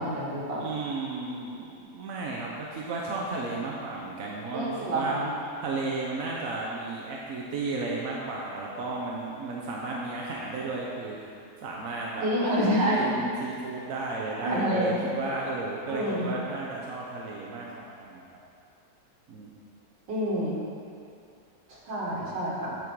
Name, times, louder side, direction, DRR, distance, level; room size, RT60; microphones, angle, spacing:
voice 1, 0.0-0.6 4.5-5.3 12.2-13.2 14.4-15.1 15.9-16.3 20.1-20.6 21.7-22.8, equal, 85° right, -5 dB, 2.3 m, -27 dB
voice 2, 0.6-5.2 5.6-11.3 11.6-12.3 12.9-18.4 19.3-19.5, right 3 dB, 55° right, -3 dB, 1.1 m, -34 dB
8.7 x 6.3 x 4.6 m, 2.4 s
omnidirectional pair, 1.9 m